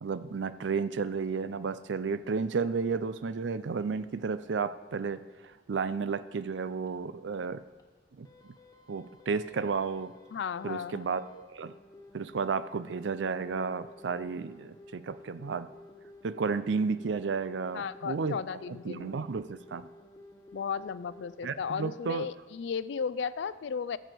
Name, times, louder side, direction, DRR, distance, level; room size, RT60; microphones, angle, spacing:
voice 1, 0.0-5.2 5.7-7.6 8.2-8.3 8.9-10.1 10.6-11.7 12.1-15.7 16.2-18.4 18.9-19.9 21.4-22.3, right 5 dB, 80° right, 14 dB, 0.5 m, -32 dB
sound 1, 5.0-5.1 5.4-5.5 5.9-6.0 6.4-6.5 6.9-7.0 7.3-7.4 7.8-7.9 8.2-21.4, left 2 dB, 20° left, 0.7 m, -53 dB
voice 2, 10.3-11.0 17.7-19.2 20.5-24.0, left 6 dB, 75° left, 17 dB, 0.4 m, -35 dB
14.0 x 6.8 x 4.6 m, 1.3 s
head